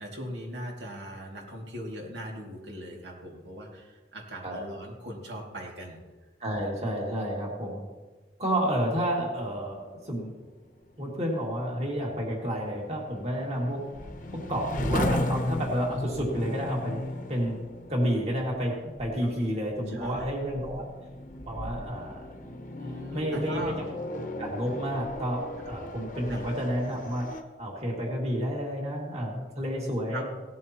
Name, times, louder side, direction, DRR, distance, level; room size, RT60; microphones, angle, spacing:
voice 1, 0.0-6.0 19.2-19.6 19.9-20.3 22.8-23.8 25.6-25.7 26.3-26.4 29.7-30.2, equal, 80° right, -1 dB, 2.5 m, -40 dB
voice 2, 6.4-7.9 8.4-10.3 11.0-13.8 14.3-17.0 17.3-17.6 17.9-20.9 21.4-22.6 23.1-23.7 24.4-27.3 27.6-30.2, equal, 35° right, -2 dB, 2.4 m, -30 dB
sound 1, 10.4-27.4, left 1 dB, 45° left, 0.9 m, -36 dB
17.5 x 13.0 x 3.0 m, 1.2 s
head